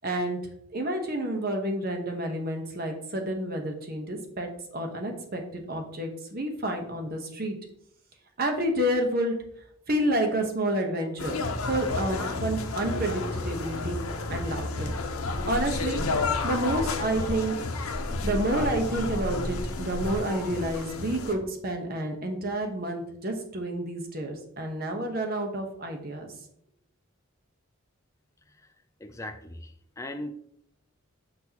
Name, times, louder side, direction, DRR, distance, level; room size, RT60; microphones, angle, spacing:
voice 1, 0.0-0.4 0.7-7.5 8.4-9.3 9.9-11.4 11.6-14.0 14.3-15.0 15.5-16.0 16.3-17.5 18.0-26.3, right 1 dB, 45° right, 3 dB, 1.0 m, -29 dB
sound 1, 11.2-21.3, left 3 dB, 90° left, 0.8 m, -31 dB
voice 2, 29.0-30.3, left 1 dB, 15° left, 7 dB, 0.4 m, -39 dB
6.2 x 5.9 x 2.9 m, 0.71 s
head